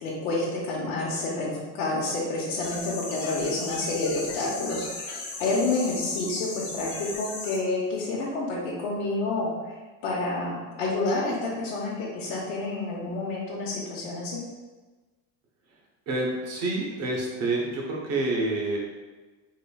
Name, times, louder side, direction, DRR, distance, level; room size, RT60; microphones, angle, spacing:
voice 1, 0.0-9.8 10.0-14.4, left 2 dB, 90° left, -5 dB, 0.9 m, -29 dB
sound 1, 2.6-7.6, left 3 dB, 55° left, 1.0 m, -37 dB
voice 2, 16.1-18.8, right 2 dB, 40° right, -1 dB, 0.8 m, -28 dB
3.9 x 3.2 x 2.3 m, 1.3 s
cardioid pair, 150°, 42 cm